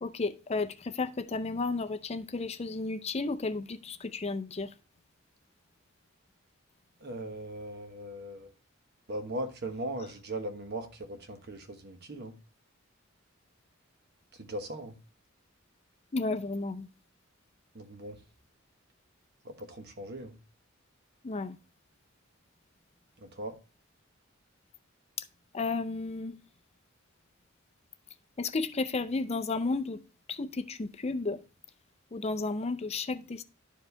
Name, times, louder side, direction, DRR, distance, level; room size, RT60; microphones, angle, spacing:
voice 1, 0.0-4.7 16.1-16.9 21.2-21.6 25.5-26.4 28.4-30.0 30.3-31.4 32.1-33.4, left 3 dB, 30° left, 0.5 m, -33 dB
voice 2, 7.0-8.5 9.1-12.3 14.3-14.9 17.7-18.2 19.4-20.4 23.2-23.6, right 1 dB, 55° right, 1.2 m, -39 dB
11.5 x 4.7 x 3.3 m
head